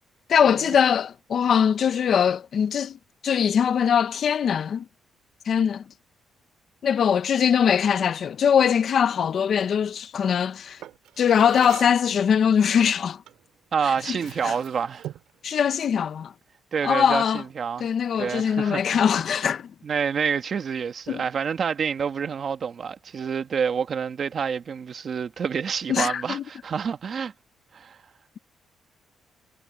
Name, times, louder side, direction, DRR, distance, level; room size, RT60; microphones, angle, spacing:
voice 1, 0.3-3.0 3.2-4.8 5.5-5.8 6.8-10.8 11.2-13.2 13.9-14.2 14.4-14.5 15.4-16.3 16.8-17.4 17.8-19.7 21.1-21.2 25.9-26.4, left 8 dB, 55° left, 1.0 m, -22 dB
Drawer open or close, 10.8-12.1 13.3-13.5 13.9-15.4, right 12 dB, 85° right, 7.3 m, -41 dB
voice 2, 13.7-15.1 16.7-17.9 18.2-19.2 19.8-27.3 27.7-28.0, right 6 dB, 45° right, 1.7 m, -28 dB
cardioid pair, 120°, 0 cm